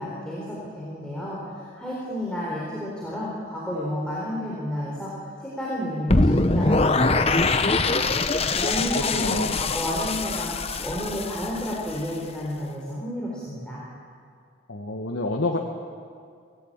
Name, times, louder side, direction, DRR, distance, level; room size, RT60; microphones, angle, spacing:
voice 1, 0.0-5.1 5.4-8.0 8.3-10.5 10.8-13.8, equal, 5° left, -6 dB, 4.2 m, -31 dB
sound 1, 6.1-12.1, left 3 dB, 30° left, 0.9 m, -23 dB
voice 2, 9.0-9.6 14.7-15.6, left 2 dB, 75° left, 2 dB, 1.6 m, -28 dB
25.0 x 17.5 x 8.8 m, 2.2 s
head